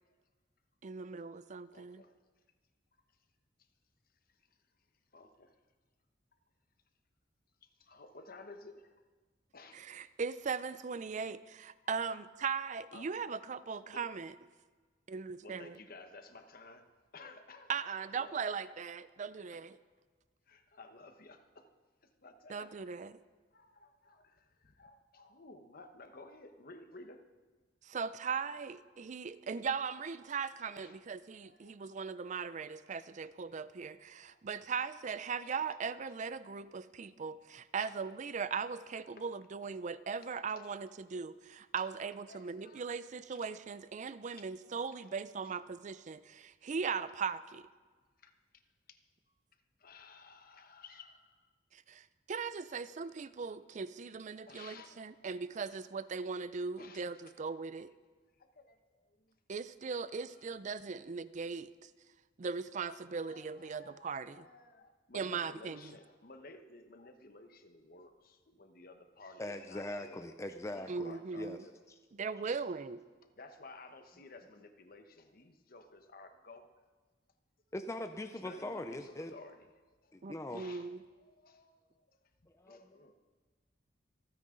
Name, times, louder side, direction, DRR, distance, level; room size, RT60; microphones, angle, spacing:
voice 1, 0.8-2.0 9.7-14.4 15.1-15.8 17.7-19.8 22.5-23.2 27.8-47.7 51.7-57.9 59.5-61.9 62.4-64.5 65.1-65.8 70.9-71.6 72.1-73.0 80.2-81.0, right 5 dB, 40° right, 15 dB, 0.4 m, -39 dB
voice 2, 1.7-2.1 5.1-5.5 7.8-8.9 9.5-9.8 12.4-12.5 12.9-13.3 13.6-14.0 15.4-16.9 17.1-18.4 20.5-21.7 22.2-22.7 23.5-27.2 30.2-31.0 31.4-32.0 34.1-34.4 37.8-38.0 39.1-39.3 40.5-40.7 42.3-42.9 43.3-43.4 44.2-45.2 48.2-48.3 48.9-49.0 49.8-51.4 54.3-55.8 56.8-57.2 58.4-59.3 62.8-70.3 70.7-71.9 73.4-76.6 78.3-79.7 80.0-80.1 80.4-80.9 81.2-81.8 82.1-82.2 82.7-83.1, left 3 dB, 55° left, 7 dB, 1.1 m, -55 dB
voice 3, 69.4-71.6 77.7-79.3 80.1-80.7 82.6-83.0, left 1 dB, 15° left, 7 dB, 0.5 m, -41 dB
26.0 x 9.4 x 3.8 m, 1.4 s
head